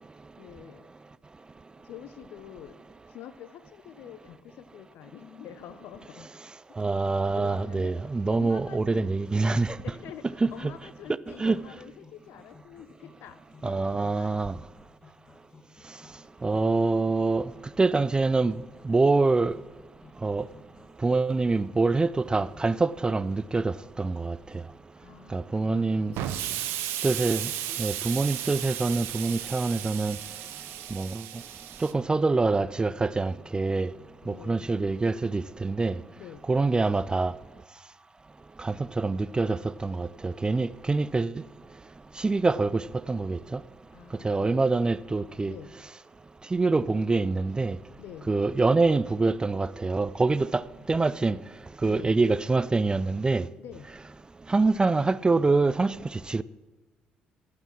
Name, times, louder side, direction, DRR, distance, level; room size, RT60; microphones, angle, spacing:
voice 1, 0.4-0.9 1.8-2.8 3.1-6.3 6.7-6.8 7.3-9.1 9.8-10.3 10.5-14.5 25.0-26.7 34.2-34.7 36.1-36.5 43.9-44.8 45.5-45.7 48.0-48.3 51.8-52.2 53.6-53.9, left 10 dB, 60° left, 0.6 m, -46 dB
voice 2, 6.8-9.8 10.4-10.7 11.4-11.6 13.6-14.5 16.4-17.5 17.8-18.6 18.8-19.6 20.2-20.5 21.0-24.6 25.3-26.1 27.0-27.5 27.8-30.2 30.9-31.2 31.8-33.9 34.3-36.0 36.5-37.3 38.6-41.4 42.2-43.6 44.2-45.5 46.5-47.8 48.3-51.4 51.8-53.5 54.5-56.4, right 3 dB, 20° right, 0.3 m, -25 dB
sound 1, 8.8-24.7, left 3 dB, 20° left, 1.9 m, -56 dB
Explosion, 26.1-31.9, right 12 dB, 60° right, 0.7 m, -34 dB
9.8 x 8.8 x 6.0 m
figure-of-eight pair, 45°, 4 cm